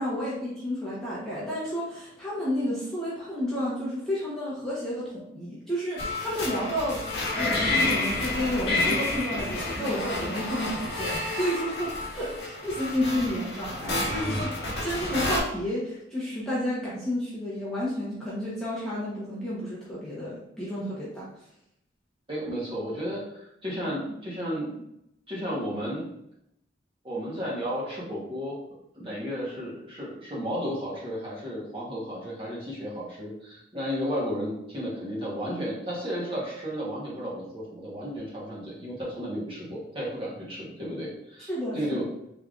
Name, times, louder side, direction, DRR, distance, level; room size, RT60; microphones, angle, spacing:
voice 1, 0.0-7.0 7.4-14.5 14.8-21.5 41.5-42.0, equal, 5° left, -9 dB, 0.8 m, -31 dB
sound 1, 6.0-15.4, left 2 dB, 60° left, 0.9 m, -29 dB
voice 2, 22.3-24.8 25.3-26.0 27.0-28.6 29.0-41.5 41.7-42.1, equal, 30° right, -6 dB, 1.1 m, -33 dB
3.5 x 3.3 x 2.4 m, 0.79 s
head